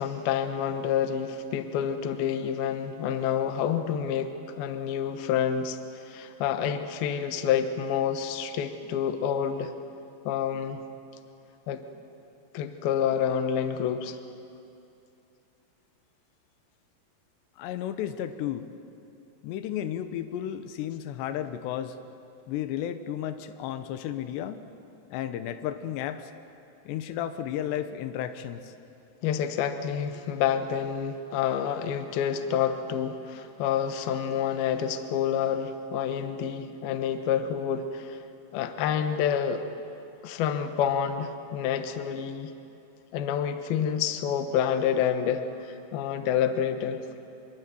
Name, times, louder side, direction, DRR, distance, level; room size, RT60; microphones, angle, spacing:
voice 1, 0.0-9.7 10.3-10.8 11.7-11.8 12.5-14.2 29.2-38.2 38.5-39.6 40.2-42.5 43.1-47.0, left 8 dB, 70° left, 8 dB, 2.8 m, -28 dB
voice 2, 17.6-18.7 19.4-22.0 22.5-24.6 25.1-26.3 26.9-28.7, left 10 dB, 90° left, 10 dB, 3.1 m, -33 dB
26.0 x 22.5 x 8.4 m, 2.7 s
omnidirectional pair, 4.9 m